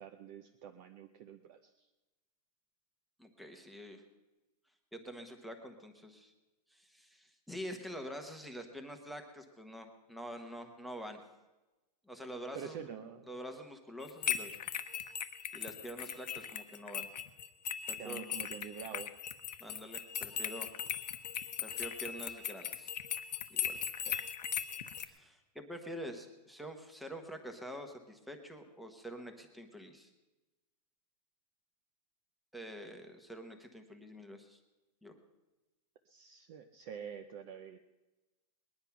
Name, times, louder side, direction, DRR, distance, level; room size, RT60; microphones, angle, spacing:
voice 1, 0.0-1.9 12.5-13.4 17.9-19.1 24.1-24.2 36.1-37.8, right 8 dB, 25° right, 6 dB, 0.5 m, -47 dB
voice 2, 3.2-4.0 4.9-6.3 6.7-11.2 12.1-12.8 13.3-14.6 15.5-17.1 17.9-18.2 19.6-20.7 21.6-22.9 23.5-23.9 25.0-30.1 32.5-34.6 35.0-35.1, equal, ahead, 4 dB, 1.0 m, -46 dB
sound 1, 14.0-25.0, left 9 dB, 80° left, 1.1 m, -39 dB
20.5 x 10.5 x 5.8 m, 1.1 s
supercardioid pair, 170°, 21 cm